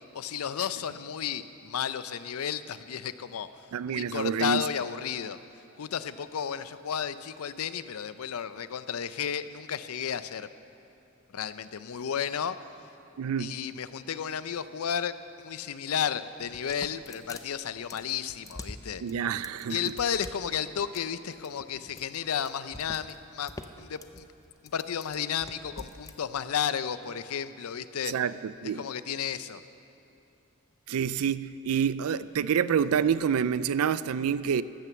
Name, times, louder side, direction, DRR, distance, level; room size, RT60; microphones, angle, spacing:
voice 1, 0.1-3.5 3.9-5.4 5.8-10.5 11.3-12.6 13.4-19.0 19.7-23.5 23.8-24.3 24.6-28.1 28.8-29.6, left 8 dB, 90° left, 13 dB, 0.5 m, -33 dB
voice 2, 3.7-4.6 13.2-13.6 19.0-19.8 28.1-28.8 30.9-34.6, right 7 dB, 85° right, 16 dB, 0.4 m, -27 dB
sound 1, 16.4-26.2, left 2 dB, 15° left, 0.5 m, -45 dB
14.0 x 9.1 x 6.9 m, 2.8 s
head